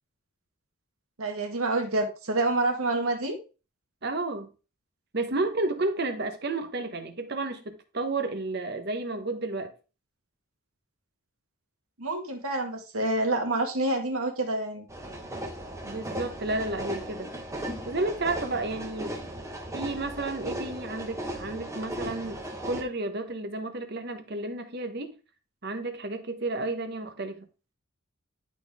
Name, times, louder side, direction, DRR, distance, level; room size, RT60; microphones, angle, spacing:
voice 1, 1.2-3.4 12.0-14.9, right 2 dB, 85° right, 1.9 m, -27 dB
voice 2, 4.0-4.5 5.1-9.7 15.8-17.3 17.8-19.2 19.7-25.1 25.6-27.5, right 2 dB, 50° right, 1.1 m, -32 dB
sound 1, 14.9-22.8, right 1 dB, 15° right, 1.1 m, -37 dB
11.0 x 4.3 x 3.5 m
head